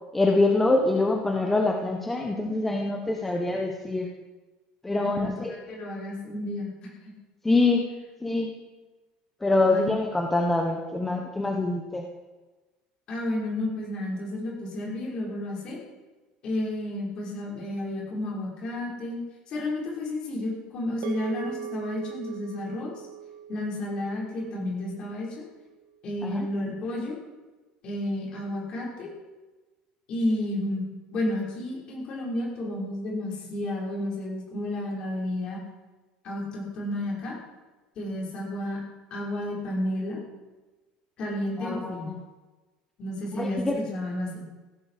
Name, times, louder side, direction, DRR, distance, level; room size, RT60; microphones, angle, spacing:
voice 1, 0.1-4.1 4.8-5.5 7.4-7.9 8.2-8.5 9.4-12.1 26.2-26.5 41.6-42.2 43.4-43.8, left 2 dB, 10° left, 2 dB, 1.2 m, -25 dB
voice 2, 5.0-7.1 9.7-9.9 13.1-15.8 16.4-19.2 19.5-23.0 23.5-25.3 26.0-27.2 27.8-29.1 30.1-30.9 31.1-35.6 36.2-37.3 38.0-38.8 39.1-40.2 41.2-42.1 43.0-44.5, left 1 dB, 35° left, -3 dB, 5.9 m, -31 dB
sound 1, 21.0-25.5, right 10 dB, 85° right, 1.9 m, -40 dB
16.5 x 15.0 x 5.1 m, 1.2 s
cardioid pair, 170°, 3 cm